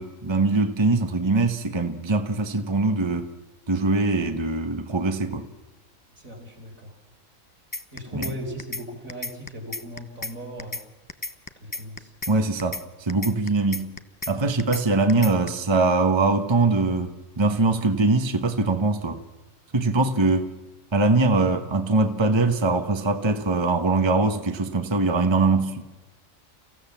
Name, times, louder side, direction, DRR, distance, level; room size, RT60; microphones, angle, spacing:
voice 1, 0.0-3.3 3.7-5.5 8.1-8.2 12.3-13.9 14.3-19.2 19.7-20.5 20.9-25.8, right 3 dB, 20° right, 1.2 m, -22 dB
voice 2, 6.2-6.9 7.9-10.8 11.6-12.1, equal, 70° right, 4.9 m, -38 dB
sound 1, 7.7-8.3 8.6-8.8 9.1-10.3 10.6-10.8 11.1-12.3 12.6-12.8 13.1-14.3 14.6-14.8 15.1-15.5, left 2 dB, 20° left, 0.7 m, -32 dB
30.0 x 16.0 x 7.3 m
omnidirectional pair, 1.4 m